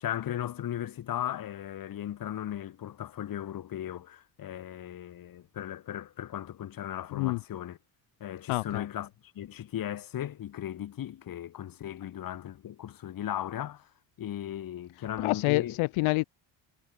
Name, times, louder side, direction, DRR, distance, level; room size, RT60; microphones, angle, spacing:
voice 1, 0.0-7.8 8.2-13.9 14.2-15.8, left 11 dB, 45° left, 1.7 m, -37 dB
voice 2, 8.5-8.8 15.2-16.2, left 23 dB, 75° left, 0.8 m, -27 dB
cardioid pair, 120°, 49 cm